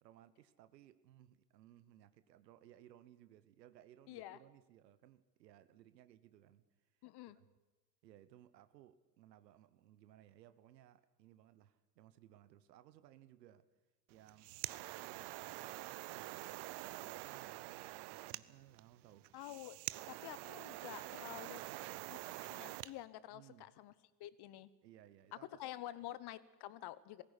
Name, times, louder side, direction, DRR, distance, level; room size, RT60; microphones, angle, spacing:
voice 1, 0.0-6.6 7.3-7.5 8.0-13.6 14.1-14.6 15.0-15.9 16.3-19.3 21.5-22.1 23.3-23.8 24.8-25.7 26.0-26.1, right 12 dB, 85° right, 14 dB, 1.0 m, -62 dB
voice 2, 4.1-4.4 7.0-7.4 19.3-19.8 20.1-21.6 22.1-22.2 22.5-23.9 24.2-24.7 25.5-27.2, left 14 dB, 50° left, 18 dB, 1.2 m, -49 dB
sound 1, 14.1-22.9, right 19 dB, 55° right, 0.8 m, -46 dB
18.5 x 16.0 x 9.9 m, 1.1 s
hypercardioid pair, 75°, 48 cm